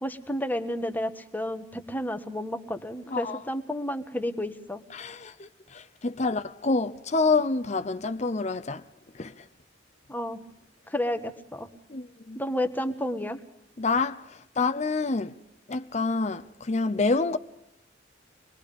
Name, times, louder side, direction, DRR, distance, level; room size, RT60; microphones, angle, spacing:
voice 1, 0.0-4.8 10.1-10.4 10.9-11.7 12.3-13.4, left 1 dB, 10° left, 1.4 m, -31 dB
voice 2, 3.1-3.4 4.9-8.8 9.2-9.4 11.9-12.4 13.8-15.3 15.7-17.4, left 3 dB, 40° left, 0.7 m, -27 dB
25.0 x 21.0 x 5.2 m
head